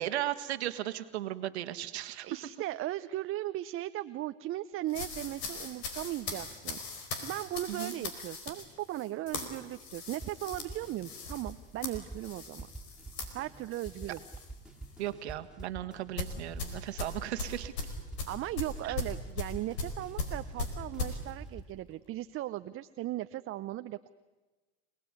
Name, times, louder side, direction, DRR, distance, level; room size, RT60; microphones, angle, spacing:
voice 1, 0.0-2.3 7.7-7.9 15.0-17.7, right 13 dB, 85° right, 9 dB, 1.6 m, -36 dB
voice 2, 2.2-6.8 7.2-12.7 13.3-14.2 18.3-24.1, right 15 dB, 40° right, 11 dB, 0.7 m, -37 dB
sound 1, 4.9-14.5 14.8-15.1 16.2-21.2, left 4 dB, 75° left, 4.7 m, -39 dB
sound 2, 10.2-21.6, right 2 dB, ahead, 3.6 m, -47 dB
27.5 x 18.5 x 9.6 m, 1.2 s
hypercardioid pair, 90°, 32 cm